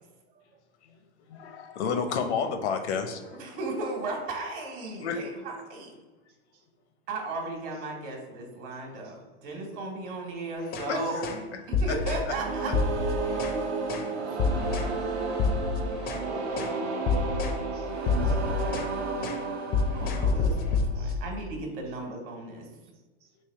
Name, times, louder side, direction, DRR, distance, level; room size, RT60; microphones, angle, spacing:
voice 1, 1.3-3.4 5.0-5.2 10.9-11.0 11.9-12.0, left 6 dB, 75° left, 7 dB, 0.7 m, -30 dB
voice 2, 3.4-5.9 7.1-11.4 11.7-12.7 13.6-14.6 18.2-18.7 19.9-22.7, right 2 dB, 50° right, 1 dB, 1.3 m, -36 dB
sound 1, 10.6-10.9 11.2-11.4 11.7-12.3 12.7-13.6 13.9-14.1 14.4-14.9 15.3-16.3 16.6-16.8 17.1-17.6 17.9-18.9 19.2-19.4 19.7-21.2, left 4 dB, 30° left, 0.4 m, -28 dB
sound 2, 12.3-21.1, right 3 dB, 70° right, 0.8 m, -32 dB
voice 3, 14.3-15.4 17.7-17.9 18.2-18.4 19.3-19.4 21.0-21.2 23.2-23.3, right 7 dB, 30° right, 5 dB, 0.6 m, -63 dB
3.4 x 2.6 x 3.5 m, 1.2 s
hypercardioid pair, 110°, 34 cm